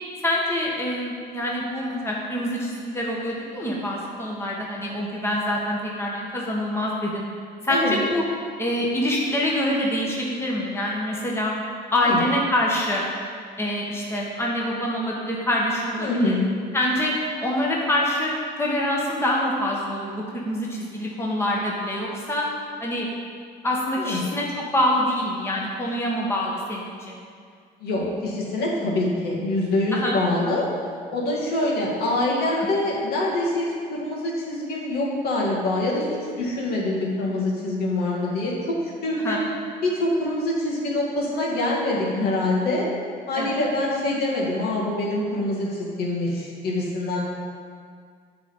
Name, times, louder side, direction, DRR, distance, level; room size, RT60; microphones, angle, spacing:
voice 1, 0.2-7.2 7.6-8.2 8.6-11.5 11.9-13.1 13.6-16.3 16.7-17.1 17.4-18.3 18.6-22.5 22.8-23.1 23.6-27.2 29.9-30.2 32.6-32.7 39.2-39.5 43.4-43.6, left 1 dB, 15° left, -3 dB, 1.3 m, -25 dB
voice 2, 16.0-16.4 24.0-24.2 27.8-30.7 31.1-33.7 33.9-38.5 39.0-39.4 39.8-42.9 43.3-47.2, left 2 dB, 70° left, -4 dB, 2.2 m, -25 dB
8.8 x 4.1 x 7.2 m, 2.1 s
cardioid pair, 110°, 17 cm